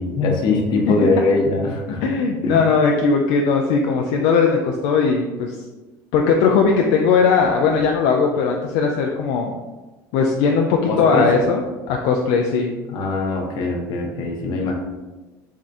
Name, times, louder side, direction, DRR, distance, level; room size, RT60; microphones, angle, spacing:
voice 1, 0.0-2.0 2.4-2.7 10.9-11.3 12.9-14.7, left 3 dB, 60° left, 1 dB, 0.8 m, -21 dB
voice 2, 2.0-5.6 6.1-9.5 10.1-12.7, left 5 dB, 75° left, 2 dB, 0.4 m, -18 dB
3.6 x 2.5 x 3.4 m, 1.2 s
supercardioid pair, 95°, 9 cm